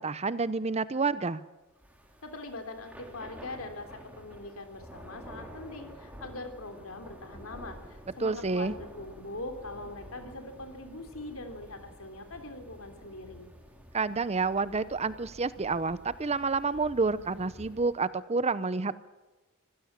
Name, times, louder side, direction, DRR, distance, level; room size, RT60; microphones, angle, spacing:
voice 1, 0.0-1.4 8.2-8.7 13.9-18.9, right 4 dB, 30° right, 16 dB, 0.7 m, -29 dB
Thunder / Rain, 1.7-18.1, equal, 5° right, 3.4 m, -50 dB
voice 2, 2.2-13.5, left 2 dB, 70° left, 6 dB, 3.4 m, -42 dB
25.0 x 16.0 x 7.4 m, 1.2 s
head